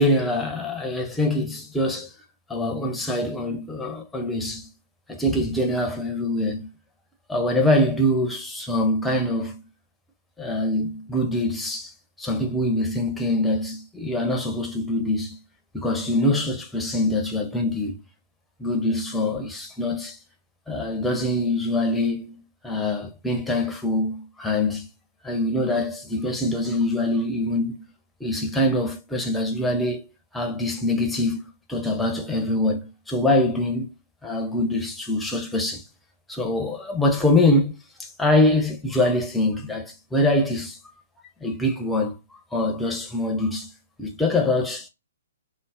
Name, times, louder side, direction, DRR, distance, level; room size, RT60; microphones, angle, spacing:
voice 1, 0.0-2.1 2.5-4.7 5.1-6.7 7.3-9.6 10.4-11.9 12.2-15.4 15.7-18.0 18.6-20.2 20.7-24.9 25.2-27.8 28.2-31.4 31.7-33.9 34.2-35.8 36.3-40.8 41.4-42.2 42.5-43.7 44.0-44.9, left 1 dB, 5° left, 0.7 m, -24 dB
3.8 x 2.0 x 3.5 m
figure-of-eight pair, 125°, 0 cm